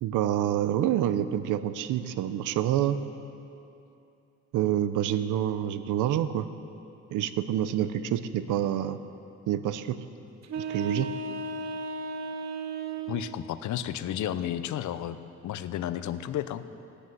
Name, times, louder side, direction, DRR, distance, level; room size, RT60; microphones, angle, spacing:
voice 1, 0.0-3.0 4.5-6.5 7.1-9.0 9.5-10.0 10.6-11.1, right 11 dB, 90° right, 13 dB, 0.7 m, -27 dB
sound 1, 10.4-13.4, right 3 dB, 60° right, 1.0 m, -35 dB
voice 2, 13.1-15.2 15.4-16.6, left 11 dB, 70° left, 13 dB, 0.8 m, -32 dB
17.0 x 10.0 x 7.9 m, 2.8 s
cardioid pair, 90°, 30 cm